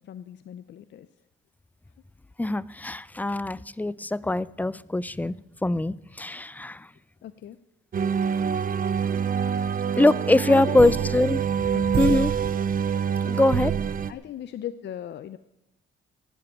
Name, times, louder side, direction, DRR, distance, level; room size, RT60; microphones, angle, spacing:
voice 1, 0.1-1.1 7.2-7.6 10.5-10.9 11.7-11.8 14.1-15.4, left 10 dB, 60° left, 13 dB, 0.6 m, -37 dB
voice 2, 2.4-5.3 5.6-6.9 10.0-11.4 12.0-12.3 13.2-13.8, left 2 dB, 10° left, 21 dB, 0.4 m, -23 dB
sound 1, 7.9-14.1, right 7 dB, 45° right, 0.8 m, -25 dB
16.0 x 7.8 x 9.1 m, 0.94 s
cardioid pair, 90°, 20 cm